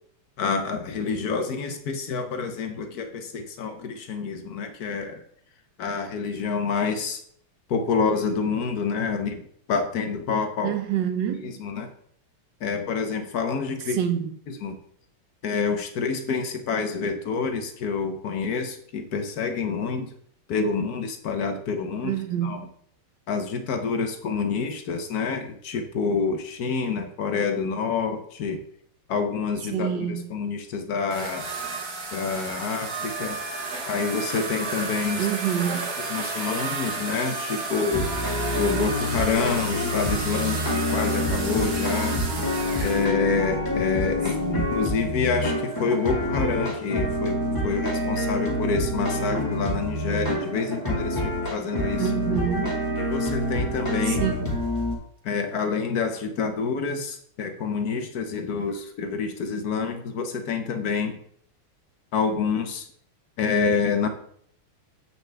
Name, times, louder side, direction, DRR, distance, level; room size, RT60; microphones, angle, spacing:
voice 1, 0.4-5.2 5.8-7.2 7.7-9.4 9.7-10.7 11.4-11.9 12.6-14.0 14.6-14.8 15.4-20.1 20.5-22.2 22.4-22.6 23.3-28.6 29.1-31.5 32.1-33.4 33.9-35.3 36.1-38.1 38.6-42.2 42.8-52.1 53.0-54.2 55.2-61.2 62.1-62.9 63.4-64.1, left 5 dB, 55° left, 1.1 m, -27 dB
voice 2, 10.6-11.6 13.9-14.4 22.0-22.7 29.7-30.4 35.2-35.9 44.4-44.8 52.0-52.9 54.1-54.6, right 9 dB, 70° right, 1.2 m, -27 dB
sound 1, 31.1-43.1, right 3 dB, 50° right, 1.6 m, -32 dB
sound 2, 37.9-55.0, left 1 dB, 10° left, 1.6 m, -27 dB
7.8 x 6.8 x 3.4 m
omnidirectional pair, 2.4 m